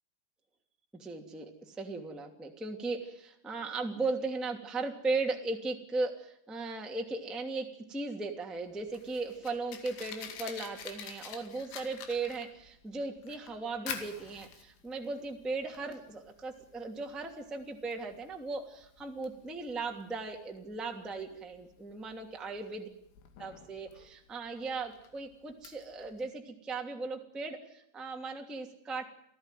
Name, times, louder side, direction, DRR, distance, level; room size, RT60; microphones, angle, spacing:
voice 1, 0.9-22.9 23.4-29.1, right 3 dB, ahead, 2 dB, 1.0 m, -37 dB
Fire, 8.6-26.3, left 8 dB, 90° left, 4.8 m, -48 dB
28.5 x 15.5 x 9.2 m, 0.76 s
omnidirectional pair, 5.5 m